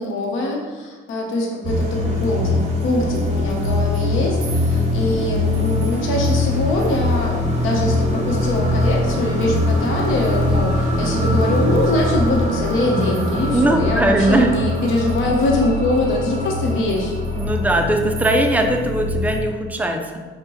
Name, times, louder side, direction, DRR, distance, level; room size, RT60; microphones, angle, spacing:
voice 1, 0.0-17.1, left 2 dB, 85° left, 0 dB, 0.8 m, -23 dB
sound 1, 1.6-19.4, left 1 dB, 35° right, 0.8 m, -22 dB
voice 2, 13.5-14.5 17.4-20.2, right 1 dB, 10° right, 3 dB, 0.4 m, -19 dB
5.3 x 2.2 x 3.0 m, 1.4 s
cardioid pair, 90°, 20 cm